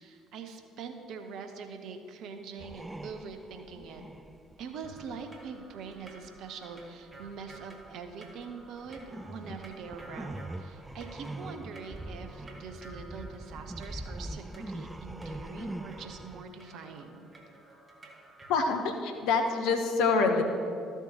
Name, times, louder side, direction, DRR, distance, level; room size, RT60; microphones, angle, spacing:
voice 1, 0.0-4.0 4.6-17.3, right 5 dB, 55° right, 6 dB, 0.8 m, -43 dB
sound 1, 2.6-6.5 6.8-16.4, right 1 dB, 10° right, 0.3 m, -43 dB
sound 2, 4.8-18.6, right 2 dB, 30° right, 1.3 m, -53 dB
voice 2, 18.5-20.4, left 4 dB, 65° left, 5 dB, 0.8 m, -26 dB
13.5 x 7.1 x 2.9 m, 2.4 s
figure-of-eight pair, 50°, 0 cm